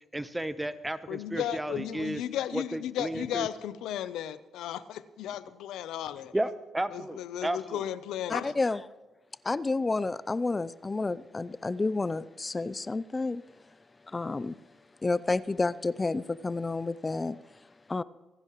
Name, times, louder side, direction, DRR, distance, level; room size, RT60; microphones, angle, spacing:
voice 1, 0.1-2.2 2.5-3.5 6.3-7.8, right 1 dB, 10° right, 0.8 m, -33 dB
voice 2, 1.1-6.3 6.9-8.5, left 11 dB, 85° left, 0.6 m, -35 dB
voice 3, 8.3-8.8 9.4-13.4 14.1-14.6 15.0-17.4 17.9-18.0, left 3 dB, 25° left, 0.4 m, -30 dB
26.5 x 10.5 x 3.1 m
cardioid pair, 90°, 0 cm